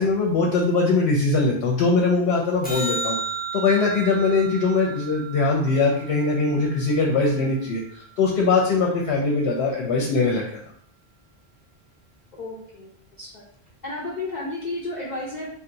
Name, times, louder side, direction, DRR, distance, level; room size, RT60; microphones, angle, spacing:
voice 1, 0.0-3.2 3.5-10.6, left 3 dB, 80° left, -1 dB, 0.8 m, -21 dB
sound 1, 2.6-7.1 13.7-13.8, right 4 dB, 10° left, 0.6 m, -33 dB
voice 2, 12.3-12.9 13.2-13.4 13.8-15.5, left 2 dB, 50° left, -5 dB, 0.7 m, -32 dB
2.7 x 2.1 x 3.9 m, 0.64 s
omnidirectional pair, 1.1 m